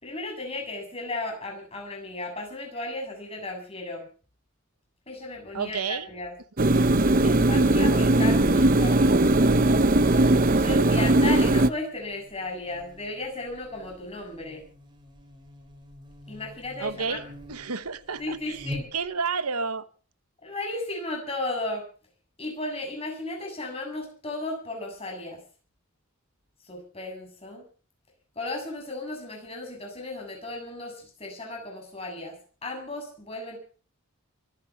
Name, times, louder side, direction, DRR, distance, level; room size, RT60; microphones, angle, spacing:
voice 1, 0.0-4.1 5.1-6.3 7.2-9.2 9.5-9.7 10.6-14.7 16.3-17.3 18.2-18.9 20.4-21.8 22.4-25.4 26.6-27.6 28.4-33.6, left 2 dB, 25° left, 7.2 m, -35 dB
voice 2, 5.5-6.1 16.8-17.2 17.5-19.9, right 5 dB, 90° right, 1.1 m, -31 dB
sound 1, 6.6-11.7, right 2 dB, 40° right, 0.8 m, -19 dB
Buzz, 8.0-19.4, left 1 dB, 20° right, 3.8 m, -46 dB
24.0 x 10.0 x 5.8 m
head